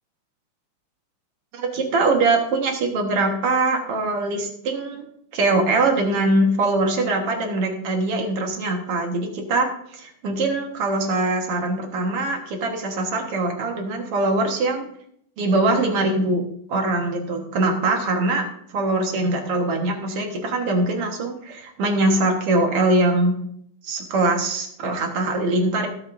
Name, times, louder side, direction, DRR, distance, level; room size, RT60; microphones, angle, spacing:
voice 1, 1.5-5.0 5.3-14.8 15.4-16.4 16.7-18.4 18.7-23.4 23.8-25.9, right 2 dB, 50° right, 2 dB, 2.0 m, -22 dB
16.5 x 8.9 x 2.6 m, 0.70 s
omnidirectional pair, 3.9 m